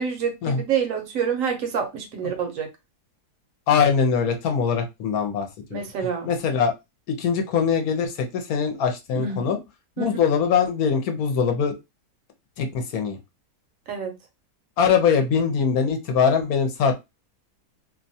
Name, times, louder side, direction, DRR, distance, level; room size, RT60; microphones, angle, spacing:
voice 1, 0.0-2.7 5.7-6.3 9.2-9.4 10.0-10.2 13.9-14.1, right 7 dB, 65° right, 0.9 m, -27 dB
voice 2, 3.7-5.8 6.2-6.7 7.2-9.6 10.0-11.7 12.6-13.2 14.8-16.9, left 6 dB, 70° left, 1.0 m, -22 dB
2.7 x 2.2 x 2.6 m
omnidirectional pair, 1.8 m